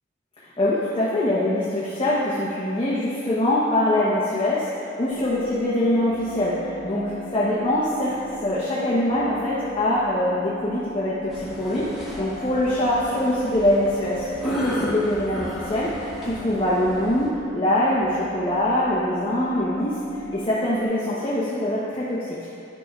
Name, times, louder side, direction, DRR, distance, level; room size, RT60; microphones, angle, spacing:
voice 1, 0.6-8.1 8.4-22.4, left 1 dB, 30° left, -8 dB, 0.9 m, -23 dB
sound 1, 5.0-20.9, right 1 dB, 80° right, 1.4 m, -38 dB
sound 2, 11.3-17.3, equal, ahead, 1.8 m, -36 dB
10.0 x 6.8 x 2.4 m, 2.7 s
head